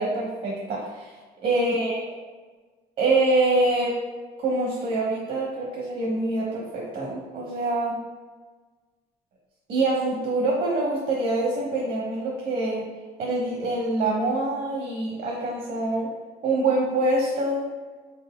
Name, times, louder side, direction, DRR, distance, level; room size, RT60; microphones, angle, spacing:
voice 1, 0.0-1.1 1.4-2.0 3.0-4.0 4.4-8.0 9.7-12.8 13.2-16.1 16.4-17.7, right 2 dB, 60° right, -3 dB, 1.0 m, -25 dB
4.1 x 4.0 x 2.3 m, 1.4 s
cardioid pair, 110°, 17 cm